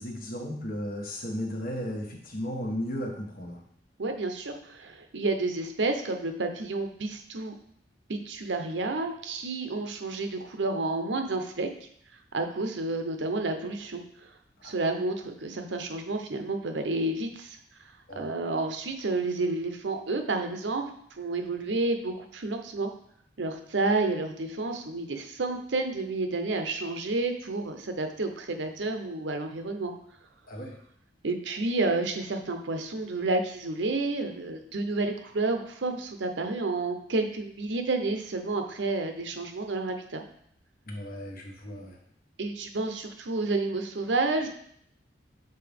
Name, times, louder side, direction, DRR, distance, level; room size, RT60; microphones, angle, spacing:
voice 1, 0.0-3.6 14.6-14.7 18.1-18.3 30.5-30.7 40.9-42.0, equal, 55° left, 1 dB, 1.2 m, -35 dB
voice 2, 4.0-7.5 8.1-11.7 12.3-14.3 14.6-17.6 18.2-20.8 21.2-22.9 23.4-29.9 31.2-40.2 42.4-44.5, right 3 dB, 80° right, 5 dB, 0.7 m, -30 dB
6.8 x 4.1 x 3.5 m, 0.66 s
head